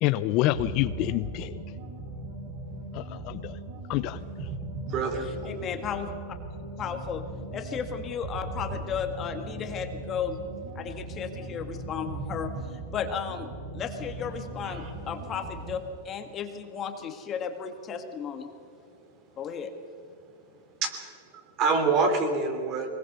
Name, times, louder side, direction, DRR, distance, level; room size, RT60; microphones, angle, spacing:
voice 1, 0.0-1.5 2.9-3.6 3.9-4.2, left 16 dB, 45° left, 13 dB, 0.6 m, -27 dB
sound 1, 0.5-15.9, right 2 dB, 55° right, 4.7 m, -38 dB
voice 2, 4.9-5.4 14.6-14.9 19.0-19.2 20.8-22.9, right 4 dB, 40° right, 5 dB, 3.5 m, -27 dB
voice 3, 5.5-6.1 6.8-7.2 7.5-10.4 10.8-13.5 13.7-18.5 19.4-19.7, left 7 dB, 30° left, 7 dB, 1.8 m, -34 dB
23.0 x 20.5 x 6.8 m, 2.4 s
supercardioid pair, 140°, 0 cm